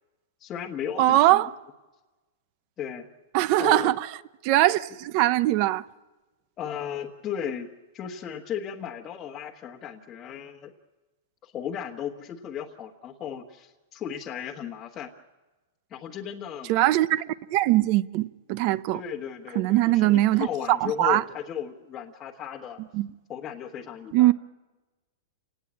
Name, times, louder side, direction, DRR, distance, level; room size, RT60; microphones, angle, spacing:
voice 1, 0.4-1.5 2.8-3.0 3.6-3.9 6.6-7.7 7.9-10.7 11.4-15.1 15.9-16.7 18.9-22.8 23.3-24.3, left 8 dB, 20° left, 1.3 m, -35 dB
voice 2, 1.0-1.5 3.3-4.1 4.4-5.8 16.7-19.0 19.5-21.2 22.9-23.1 24.1-24.3, right 15 dB, 35° right, 0.7 m, -21 dB
29.0 x 18.5 x 8.6 m
supercardioid pair, 170°, 0 cm